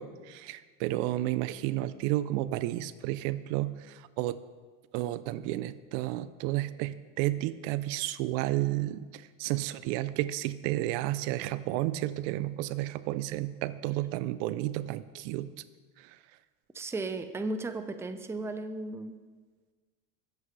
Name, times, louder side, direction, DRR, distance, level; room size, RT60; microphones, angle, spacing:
voice 1, 0.0-4.4 4.9-15.5, right 15 dB, 65° right, 15 dB, 0.6 m, -32 dB
voice 2, 16.7-19.2, right 2 dB, 5° right, 8 dB, 0.6 m, -35 dB
20.5 x 8.0 x 3.3 m, 1.4 s
supercardioid pair, 115°, 40 cm